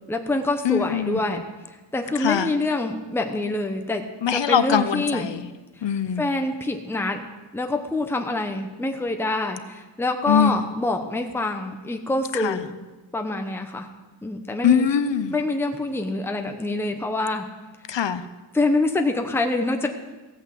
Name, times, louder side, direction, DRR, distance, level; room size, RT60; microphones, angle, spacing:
voice 1, 0.1-1.4 1.9-4.0 4.3-5.3 6.2-7.2 7.5-12.9 13.1-13.9 14.2-14.9 15.3-17.4 18.5-19.9, left 2 dB, 5° left, 0.9 m, -25 dB
voice 2, 0.7-1.2 2.2-2.5 4.2-5.2 5.8-6.2 10.3-10.5 14.6-15.3 17.9-18.2, left 8 dB, 70° left, 0.8 m, -21 dB
16.0 x 8.9 x 7.6 m
wide cardioid pair, 170°, 45 cm